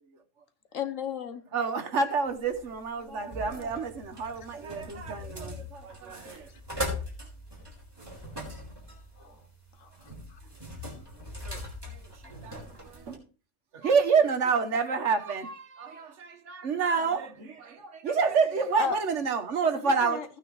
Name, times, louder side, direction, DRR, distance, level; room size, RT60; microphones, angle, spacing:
voice 1, 0.7-1.4 6.3-6.6 9.8-10.4 18.8-18.9 19.8-20.2, left 7 dB, 90° left, 1.4 m, -34 dB
voice 2, 1.5-6.5 8.2-8.3 9.2-9.3 11.4-13.2 13.7-20.2, right 5 dB, 70° right, 1.5 m, -29 dB
sound 1, 2.3-13.2, left 1 dB, 20° right, 4.0 m, -41 dB
voice 3, 7.6-9.5 10.4-10.6 11.0-11.4, left 3 dB, 60° left, 2.0 m, -64 dB
16.0 x 9.2 x 3.1 m
omnidirectional pair, 1.3 m